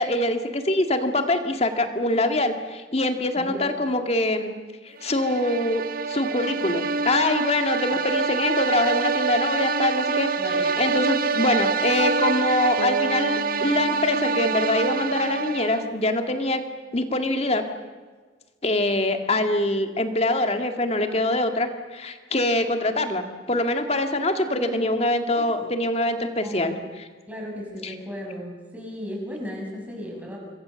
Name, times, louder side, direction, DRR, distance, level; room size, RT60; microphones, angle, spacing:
voice 1, 0.0-4.5 4.8-10.3 10.8-16.6 16.9-17.7 18.6-27.1 27.8-27.9, left 1 dB, 35° left, 6 dB, 2.0 m, -24 dB
voice 2, 3.4-3.7 10.4-10.7 24.5-24.9 25.3-25.7 26.4-26.8 27.3-30.4, equal, 10° right, -1 dB, 6.5 m, -36 dB
sound 1, 5.0-16.0, right 5 dB, 50° right, 0.7 m, -26 dB
Bass guitar, 12.8-16.6, left 1 dB, 85° left, 1.5 m, -40 dB
26.5 x 22.5 x 7.0 m, 1.5 s
head